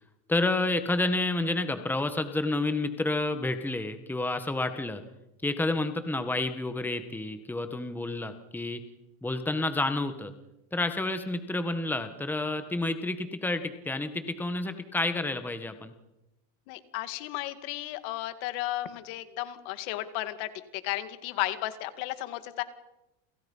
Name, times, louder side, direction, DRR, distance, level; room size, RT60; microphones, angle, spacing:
voice 1, 0.3-5.0 5.4-8.8 9.2-10.3 10.7-15.9, left 2 dB, 5° left, 9 dB, 1.6 m, -29 dB
voice 2, 16.7-22.6, left 15 dB, 65° left, 11 dB, 2.3 m, -34 dB
29.5 x 27.5 x 5.7 m, 0.96 s
cardioid pair, 150°, 41 cm